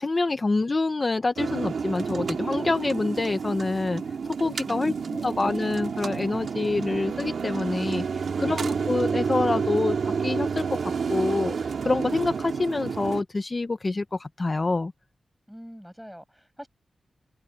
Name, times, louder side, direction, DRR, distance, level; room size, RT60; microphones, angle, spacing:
voice 1, 0.0-4.0 4.4-14.9, left 3 dB, 30° left, 0.6 m, -26 dB
sound 1, 1.4-13.2, right 5 dB, 85° right, 2.0 m, -29 dB
voice 2, 4.6-5.0 5.3-5.4 8.2-8.8 15.5-16.7, equal, ahead, 6.4 m, -45 dB
wide cardioid pair, 175°, 0 cm